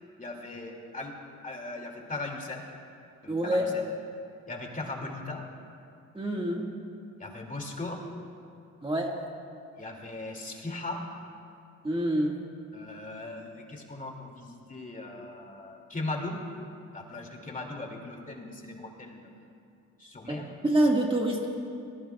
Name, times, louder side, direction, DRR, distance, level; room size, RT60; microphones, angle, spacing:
voice 1, 0.2-1.1 1.4-2.7 3.2-3.7 4.5-5.4 7.2-8.0 9.8-11.0 12.7-16.4 16.9-19.3 20.0-20.5, left 2 dB, 25° left, 1 dB, 2.5 m, -38 dB
voice 2, 3.3-3.7 6.1-6.7 8.8-9.1 11.8-12.4 20.3-20.4 20.6-21.5, right 1 dB, 15° right, -1 dB, 1.8 m, -26 dB
23.5 x 19.5 x 2.3 m, 2.5 s
cardioid pair, 90°, 30 cm